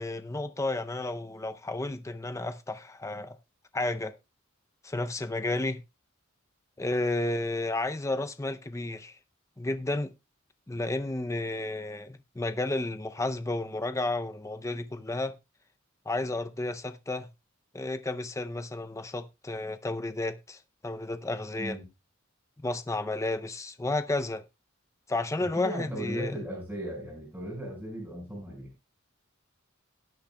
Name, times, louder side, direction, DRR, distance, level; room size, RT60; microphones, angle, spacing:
voice 1, 0.0-3.4 3.7-4.2 4.8-5.8 6.8-9.2 9.6-10.1 10.7-15.4 16.1-17.3 17.7-21.8 22.6-24.4 25.1-26.3, left 2 dB, 15° left, 0.5 m, -32 dB
voice 2, 25.4-28.7, equal, 10° right, 5.4 m, -37 dB
17.5 x 8.7 x 2.3 m
head